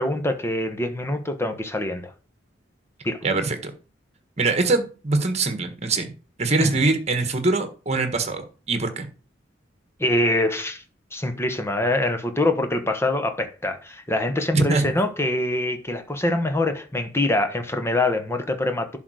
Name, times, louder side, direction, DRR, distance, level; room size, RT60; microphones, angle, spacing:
voice 1, 0.0-2.1 3.0-3.2 6.6-6.7 10.0-10.8 11.1-19.0, left 1 dB, 15° left, 1.2 m, -24 dB
voice 2, 3.2-3.7 4.4-6.1 6.4-9.1 14.5-14.9, right 3 dB, 35° right, 1.5 m, -23 dB
11.0 x 4.0 x 6.3 m
head